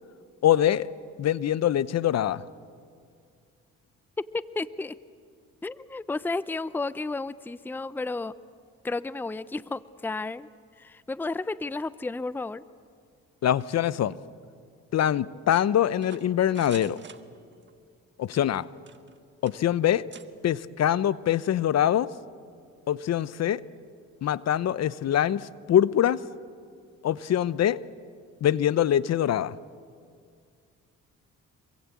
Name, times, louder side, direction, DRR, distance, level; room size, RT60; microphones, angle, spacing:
voice 1, 0.4-0.9 1.2-2.4 13.4-14.2 14.9-17.0 18.2-18.7 19.4-20.0 20.4-22.1 22.9-23.6 24.2-26.2 27.0-27.8 28.4-29.5, left 11 dB, 60° left, 17 dB, 0.8 m, -24 dB
voice 2, 4.3-5.0 5.6-8.3 8.8-10.5 10.8-12.6, left 3 dB, 5° left, 16 dB, 0.6 m, -32 dB
sound 1, 15.5-17.7 18.2-19.2 19.5-19.6 20.1-20.3, right 6 dB, 40° right, 1.4 m, -48 dB
26.5 x 22.5 x 8.4 m, 2.2 s
cardioid pair, 90°, 30 cm